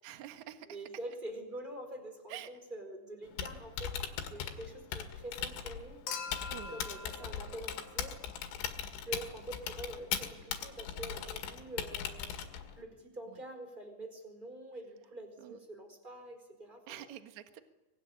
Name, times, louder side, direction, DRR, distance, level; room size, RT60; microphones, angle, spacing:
voice 1, 0.0-0.7 2.3-2.5 6.5-6.8 15.4-15.6 16.9-17.6, right 12 dB, 60° right, 8 dB, 2.1 m, -46 dB
voice 2, 0.7-4.0 4.2-6.1 6.7-8.2 9.0-12.4 12.8-17.1, right 1 dB, 10° right, 6 dB, 4.1 m, -46 dB
Typing, 3.2-12.8, left 9 dB, 90° left, 4.5 m, -40 dB
Human group actions / Chink clink / Liquid, 6.1-8.5 9.9-10.0, left 5 dB, 75° left, 4.7 m, -44 dB
24.0 x 20.5 x 10.0 m, 1.1 s
omnidirectional pair, 5.4 m